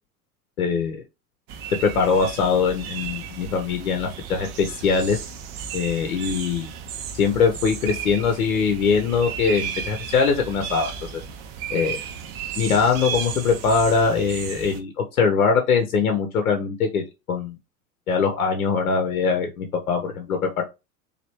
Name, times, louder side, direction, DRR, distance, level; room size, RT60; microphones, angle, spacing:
voice 1, 0.6-1.0 1.8-5.2 5.7-6.7 7.1-11.2 11.7-12.0 12.6-17.0 17.3-17.5 18.1-20.6, left 5 dB, 75° left, 4 dB, 0.7 m, -22 dB
sound 1, 1.5-14.8, right 8 dB, 45° right, 0.6 m, -34 dB
3.2 x 2.5 x 2.9 m, 0.25 s
figure-of-eight pair, 80°, 43 cm